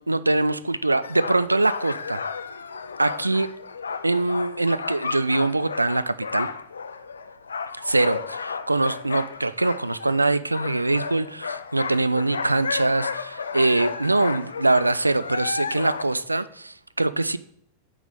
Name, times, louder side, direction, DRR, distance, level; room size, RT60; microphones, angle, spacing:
voice 1, 0.1-2.2 3.0-3.5 4.0-6.5 7.8-17.4, right 2 dB, 85° right, 15 dB, 0.3 m, -23 dB
sound 1, 1.0-10.2 10.5-16.0, left 5 dB, 75° left, 0.4 m, -33 dB
9.2 x 3.8 x 6.5 m, 0.67 s
figure-of-eight pair, 90°, 0 cm